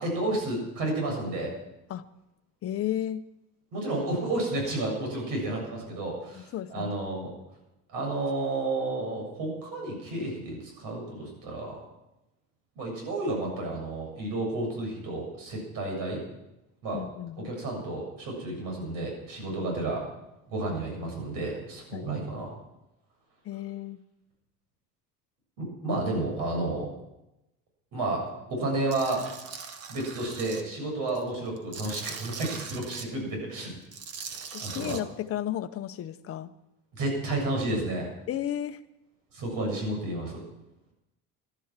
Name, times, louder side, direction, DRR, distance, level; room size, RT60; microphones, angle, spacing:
voice 1, 0.0-1.5 3.7-7.3 7.9-11.8 12.8-16.2 16.8-17.0 17.4-20.0 20.5-22.5 25.6-26.9 27.9-29.2 29.9-33.7 34.3-35.0 36.9-38.1 39.3-40.4, right 2 dB, 70° right, 1 dB, 7.5 m, -31 dB
voice 2, 2.6-3.2 6.4-6.9 16.9-17.5 21.9-22.1 23.4-24.0 34.5-36.5 38.3-38.8, left 11 dB, 40° left, 11 dB, 0.8 m, -33 dB
Tools, 28.9-30.6 31.1-33.1 33.8-35.0, right 6 dB, 45° right, 1.4 m, -40 dB
13.0 x 12.0 x 7.4 m, 0.93 s
cardioid pair, 145°, 35 cm